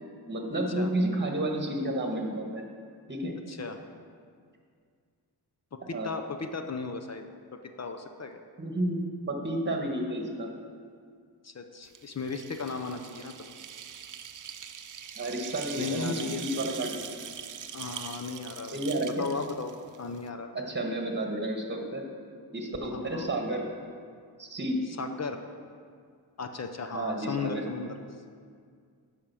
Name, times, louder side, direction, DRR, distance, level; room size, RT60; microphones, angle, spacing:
voice 1, 0.3-2.7 3.1-3.3 5.9-6.1 8.6-10.5 15.2-17.1 18.7-19.3 20.5-22.0 22.5-23.6 24.4-24.8 26.9-27.6, right 1 dB, 25° right, 2 dB, 1.4 m, -31 dB
voice 2, 3.5-3.8 5.7-7.3 7.8-8.4 11.4-13.5 15.8-16.4 17.7-18.8 19.2-19.7 20.0-20.5 22.9-23.3 25.0-25.4 26.4-27.9, left 4 dB, 40° left, 6 dB, 0.6 m, -36 dB
sound 1, 11.9-20.3, right 8 dB, 50° right, 0.5 m, -42 dB
8.6 x 5.1 x 6.2 m, 2.1 s
cardioid pair, 70°, 41 cm